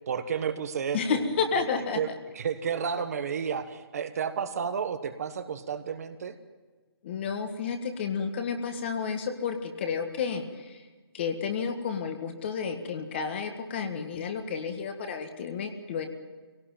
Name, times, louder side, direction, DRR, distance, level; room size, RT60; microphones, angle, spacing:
voice 1, 0.1-1.2 1.9-2.1 2.3-6.3, right 7 dB, 40° right, 9 dB, 1.3 m, -31 dB
voice 2, 0.9-2.0 7.0-10.8 11.1-16.1, left 6 dB, 25° left, 6 dB, 1.7 m, -31 dB
23.0 x 17.5 x 9.1 m, 1.3 s
hypercardioid pair, 165°, 13 cm